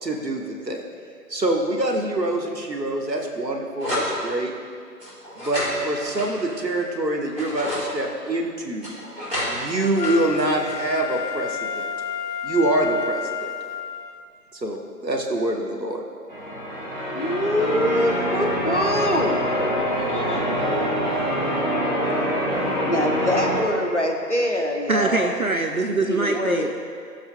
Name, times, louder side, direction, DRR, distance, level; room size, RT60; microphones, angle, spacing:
voice 1, 0.0-0.8 1.3-4.5 5.4-8.9 9.5-11.9 12.4-13.5 14.5-16.0, right 1 dB, 80° right, 2 dB, 1.3 m, -25 dB
sound 1, 3.8-4.1 5.0-6.8 7.2-7.9 8.8-11.3, left 1 dB, 5° right, 2.3 m, -31 dB
Wind instrument woodwind instrument, 10.0-14.2 14.8-14.9, left 8 dB, 75° left, 0.6 m, -31 dB
Church bell, 16.3-23.6, equal, 30° left, 1.1 m, -25 dB
voice 2, 17.1-19.4 20.0-20.5 22.8-25.3 25.9-26.7, left 1 dB, 45° left, 2 dB, 0.8 m, -24 dB
voice 3, 24.9-26.8, right 3 dB, 60° right, 4 dB, 0.5 m, -23 dB
15.5 x 7.2 x 2.2 m, 2.2 s
figure-of-eight pair, 165°, 49 cm